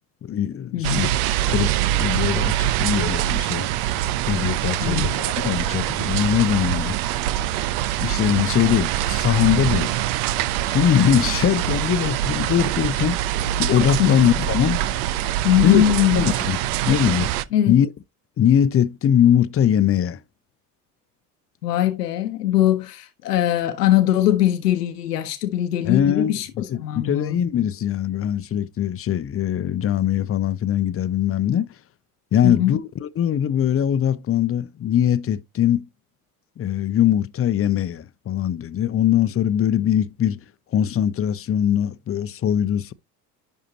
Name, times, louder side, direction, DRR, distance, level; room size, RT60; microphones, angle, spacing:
voice 1, 0.2-1.1 1.4-3.7 4.3-7.0 8.0-9.9 10.7-13.2 13.6-14.8 15.6-15.8 16.2-16.6 16.9-17.3 17.7-17.9 18.4-20.2 25.8-26.3 26.7-31.7 32.3-35.9 36.6-40.4 40.7-42.9, left 10 dB, 30° left, 0.7 m, -21 dB
voice 2, 0.7-1.1 4.8-5.2 14.0-14.2 15.4-16.3 17.5-17.7 21.6-27.4 32.4-32.7, left 12 dB, 90° left, 0.9 m, -21 dB
sound 1, 0.8-17.4, right 13 dB, 65° right, 0.7 m, -24 dB
11.0 x 4.6 x 2.8 m
hypercardioid pair, 70°, 46 cm